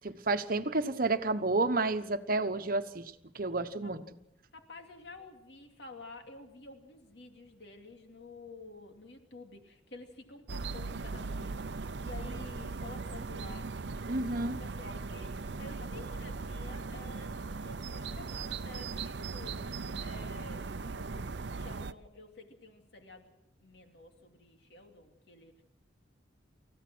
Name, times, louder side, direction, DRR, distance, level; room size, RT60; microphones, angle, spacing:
voice 1, 0.0-4.0 14.1-14.6, right 3 dB, 50° right, 9 dB, 1.2 m, -31 dB
voice 2, 4.5-25.6, left 2 dB, 60° left, 4 dB, 2.7 m, -51 dB
sound 1, 10.5-21.9, right 4 dB, 65° right, 0.7 m, -39 dB
29.0 x 15.0 x 6.2 m, 0.84 s
head